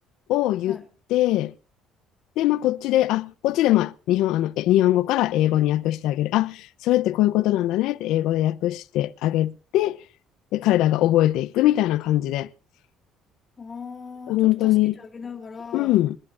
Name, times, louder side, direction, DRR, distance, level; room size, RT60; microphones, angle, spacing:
voice 1, 0.3-0.8 1.1-1.5 2.4-10.0 10.5-12.5 14.3-15.0 15.7-16.2, left 14 dB, 80° left, 0.6 m, -21 dB
voice 2, 13.6-15.9, left 5 dB, 30° left, 3.1 m, -39 dB
27.5 x 11.0 x 2.6 m
cardioid pair, 110°, 0 cm